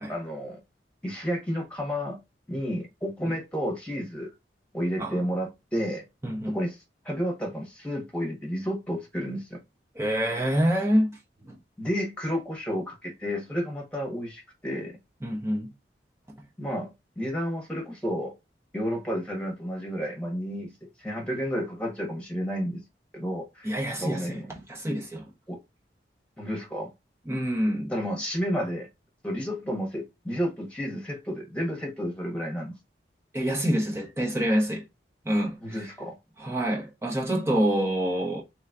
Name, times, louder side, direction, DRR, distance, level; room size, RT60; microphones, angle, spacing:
voice 1, 0.1-0.6 1.0-2.2 2.5-4.3 4.7-6.0 6.5-6.8 7.0-9.6 11.8-15.0 16.6-18.3 18.7-22.8 23.1-24.6 25.5-25.6 26.4-26.9 27.9-28.9 29.2-32.7 35.6-36.2, equal, 5° left, 1.3 m, -31 dB
voice 2, 6.2-6.6 9.9-11.2 11.4-11.6 15.2-15.7 23.6-24.4 24.7-25.2 27.3-27.9 33.3-34.8 35.2-35.8 36.4-38.4, equal, 15° right, 0.7 m, -26 dB
3.3 x 3.0 x 3.6 m
head